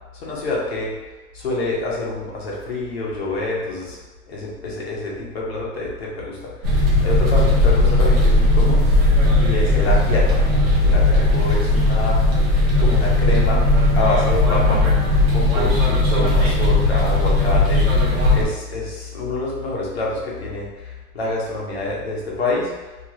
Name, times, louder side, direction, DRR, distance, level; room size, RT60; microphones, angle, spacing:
voice 1, 0.1-1.0 1.3-4.0 4.3-8.9 9.4-10.4 10.8-12.2 12.8-14.9 15.3-22.8, left 2 dB, 40° left, -4 dB, 0.6 m, -27 dB
sound 1, 6.6-18.5, left 2 dB, 40° right, 0.6 m, -17 dB
2.5 x 2.3 x 2.9 m, 1.1 s
hypercardioid pair, 175°, 47 cm